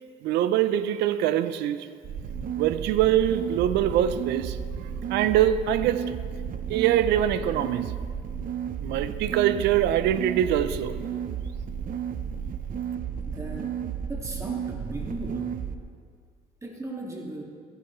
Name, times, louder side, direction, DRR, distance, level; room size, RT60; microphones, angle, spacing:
voice 1, 0.2-1.9 2.6-4.6 5.1-6.1 6.7-7.9 8.8-11.0, right 11 dB, 85° right, 0.7 m, -23 dB
sound 1, 2.0-15.7, right 8 dB, 55° right, 0.8 m, -33 dB
voice 2, 13.2-13.8 14.1-15.5 16.6-17.4, right 1 dB, 20° right, 2.3 m, -37 dB
28.0 x 10.5 x 3.3 m
cardioid pair, 110°, 17 cm